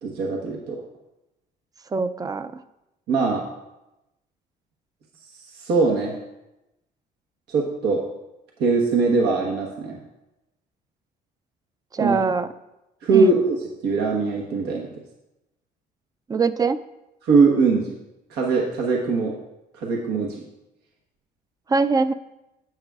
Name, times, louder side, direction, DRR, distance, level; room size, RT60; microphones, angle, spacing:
voice 1, 0.0-0.8 3.1-3.4 5.5-6.1 7.5-8.0 8.6-10.0 12.0-12.2 13.0-13.6 13.8-14.9 17.2-18.0 18.3-19.3 19.7-20.4, right 4 dB, 80° right, -1 dB, 1.2 m, -21 dB
voice 2, 1.9-2.6 11.9-12.5 13.1-13.3 16.3-16.8 21.7-22.1, right 4 dB, 20° right, 12 dB, 0.4 m, -22 dB
10.5 x 7.9 x 2.4 m, 0.94 s
cardioid pair, 110°, 17 cm